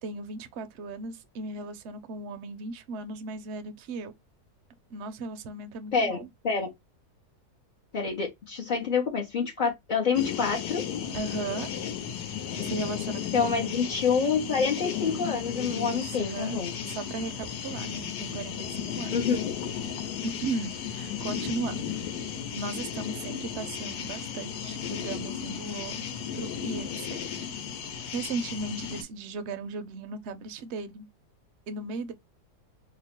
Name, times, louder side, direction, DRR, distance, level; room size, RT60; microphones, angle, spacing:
voice 1, 0.0-4.1 4.9-6.3 11.1-11.7 12.6-13.8 15.7-16.6 16.9-19.1 20.2-21.9 22.6-26.0 26.3-27.2 28.1-31.1 31.7-32.1, right 3 dB, 65° right, 0.7 m, -36 dB
voice 2, 7.9-10.8 13.3-16.7 19.1-19.4, left 5 dB, 60° left, 0.5 m, -27 dB
sound 1, 10.2-29.0, left 8 dB, 85° left, 1.2 m, -35 dB
2.9 x 2.1 x 4.1 m
omnidirectional pair, 1.7 m